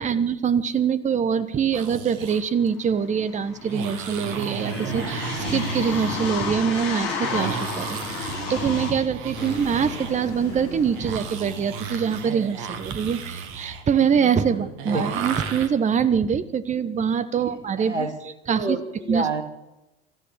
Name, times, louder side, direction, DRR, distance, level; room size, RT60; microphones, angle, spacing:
voice 1, 0.0-8.0 8.5-18.1 18.5-18.8 19.1-19.3, right 7 dB, 20° right, 14 dB, 1.2 m, -24 dB
sound 1, 1.6-2.4 3.6-15.7, right 7 dB, 55° right, 2.3 m, -34 dB
sound 2, 2.4-2.5 2.7-8.9, left 5 dB, 50° left, 6.5 m, -31 dB
sound 3, 9.3-13.6, left 4 dB, 65° left, 4.5 m, -41 dB
voice 2, 14.5-15.0 17.3-17.5 17.8-18.1 18.5-19.4, right 2 dB, 85° right, 8 dB, 2.5 m, -29 dB
24.5 x 13.0 x 8.9 m, 0.98 s
figure-of-eight pair, 75°, 34 cm